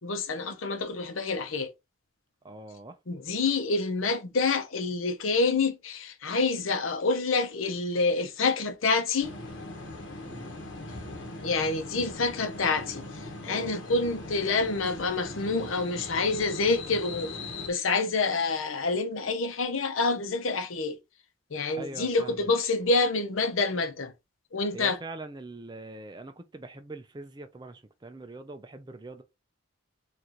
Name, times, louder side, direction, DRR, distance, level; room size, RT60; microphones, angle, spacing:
voice 1, 0.0-1.7 3.1-9.4 11.4-17.4 17.6-21.0 21.5-24.1 24.5-25.0, left 3 dB, 90° left, 0.8 m, -27 dB
voice 2, 2.4-3.0 10.2-10.5 13.4-13.7 21.7-22.5 24.7-29.2, right 2 dB, 20° right, 0.4 m, -43 dB
sound 1, 9.2-17.7, left 2 dB, 70° left, 1.1 m, -40 dB
4.6 x 2.6 x 2.9 m
head